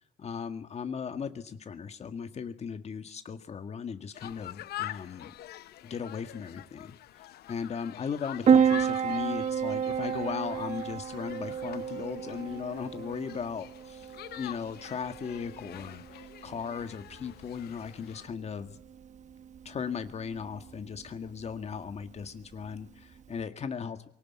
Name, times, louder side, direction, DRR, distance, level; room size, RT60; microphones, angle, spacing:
voice 1, 0.2-5.3 5.8-18.8 19.7-24.1, left 6 dB, 40° left, 8 dB, 1.9 m, -37 dB
sound 1, 4.1-18.3, left 14 dB, 70° left, 1.1 m, -46 dB
Piano, 8.5-23.4, right 7 dB, 45° right, 1.2 m, -32 dB
23.5 x 18.0 x 9.5 m, 0.72 s
cardioid pair, 110°, 17 cm